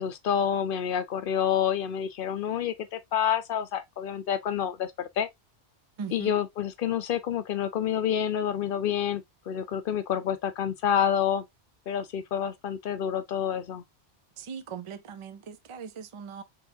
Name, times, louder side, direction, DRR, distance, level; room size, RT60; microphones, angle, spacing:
voice 1, 0.0-5.3 6.1-11.4 11.9-13.8, left 9 dB, 60° left, 0.7 m, -28 dB
voice 2, 6.0-6.3 14.4-16.4, right 6 dB, 55° right, 0.3 m, -39 dB
3.8 x 3.0 x 2.6 m
omnidirectional pair, 1.2 m